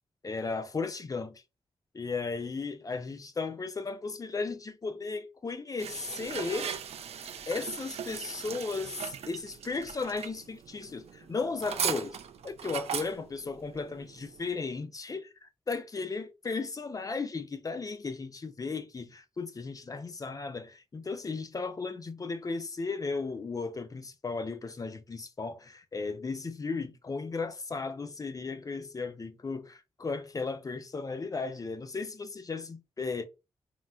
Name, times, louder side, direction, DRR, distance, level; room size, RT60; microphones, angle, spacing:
voice 1, 0.2-1.4 1.9-6.7 7.5-12.2 12.4-33.3, left 4 dB, 35° left, 0.4 m, -35 dB
sound 1, 5.8-14.5, right 8 dB, 75° right, 0.4 m, -38 dB
3.8 x 2.1 x 2.3 m
cardioid pair, 80°, 11 cm